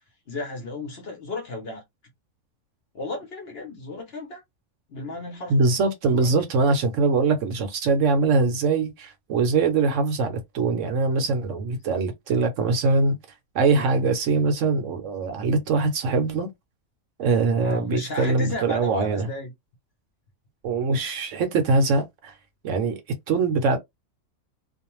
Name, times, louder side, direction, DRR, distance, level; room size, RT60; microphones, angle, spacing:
voice 1, 0.3-1.8 2.9-4.4 4.9-5.6 6.0-6.3 17.6-19.5, left 2 dB, 50° left, 0.8 m, -34 dB
voice 2, 5.5-13.2 13.5-16.5 17.2-19.3 20.6-22.3 22.6-23.0 23.3-23.8, right 3 dB, 65° right, 0.9 m, -22 dB
2.5 x 2.2 x 2.9 m
omnidirectional pair, 1.5 m